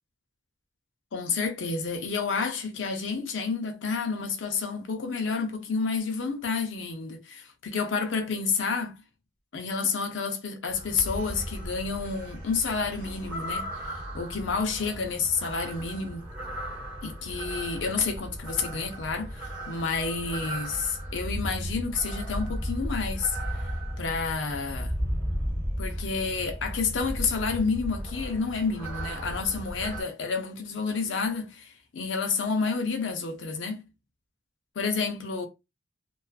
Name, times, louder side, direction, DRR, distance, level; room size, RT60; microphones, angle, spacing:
voice 1, 1.1-9.0 9.5-16.3 17.0-23.4 24.0-24.9 25.8-33.9 34.8-35.5, left 5 dB, 75° left, 0.6 m, -30 dB
sound 1, 10.7-30.0, equal, 10° right, 1.1 m, -35 dB
2.4 x 2.3 x 2.4 m
head